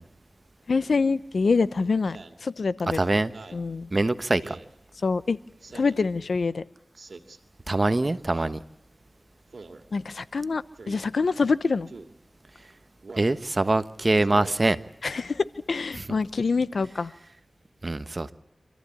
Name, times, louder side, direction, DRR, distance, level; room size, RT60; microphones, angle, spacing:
voice 1, 0.7-2.2 2.4-3.0 3.5-3.9 5.0-5.4 5.7-6.6 9.9-11.9 15.0-17.1, left 4 dB, 80° left, 16 dB, 0.8 m, -25 dB
Speech synthesizer, 2.1-2.4 3.2-3.7 4.4-4.7 5.6-6.1 7.0-7.4 8.3-8.6 9.5-9.8 10.8-11.0 11.9-12.1 13.0-13.4 14.2-14.6, right 3 dB, 70° right, 2.5 m, -44 dB
voice 2, 2.9-3.3 3.9-4.5 7.7-8.6 13.2-14.8 15.9-16.1 17.8-18.3, right 2 dB, 40° right, 12 dB, 1.3 m, -24 dB
27.0 x 14.5 x 9.9 m, 0.82 s
cardioid pair, 45°, 0 cm